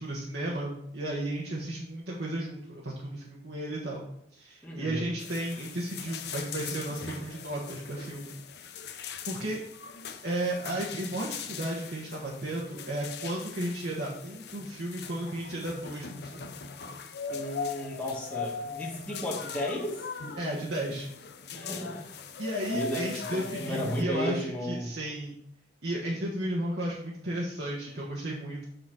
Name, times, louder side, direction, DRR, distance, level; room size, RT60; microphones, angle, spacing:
voice 1, 0.0-4.0 4.3-8.3 9.2-9.6 10.2-16.4 20.4-21.1 22.4-25.3 25.8-28.6, right 1 dB, 70° right, -4 dB, 1.3 m, -34 dB
voice 2, 4.6-5.1 17.3-20.0 21.5-22.1 22.7-24.9, equal, 10° left, -6 dB, 1.5 m, -34 dB
sound 1, 5.2-24.0, left 5 dB, 65° left, 0.7 m, -40 dB
8.2 x 3.9 x 6.1 m, 0.73 s
head